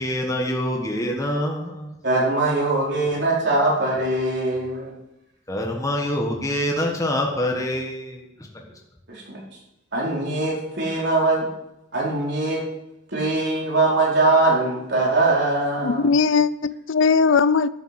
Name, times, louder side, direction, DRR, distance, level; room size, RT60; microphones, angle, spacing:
voice 1, 0.0-1.8 5.5-8.2, left 1 dB, 15° left, 0 dB, 1.5 m, -25 dB
voice 2, 2.0-4.9 9.1-9.4 9.9-11.4 11.9-12.6 13.1-16.1, right 2 dB, 60° right, -4 dB, 4.4 m, -22 dB
voice 3, 15.8-17.7, left 5 dB, 65° left, 16 dB, 0.5 m, -19 dB
12.0 x 7.3 x 7.6 m, 0.88 s
head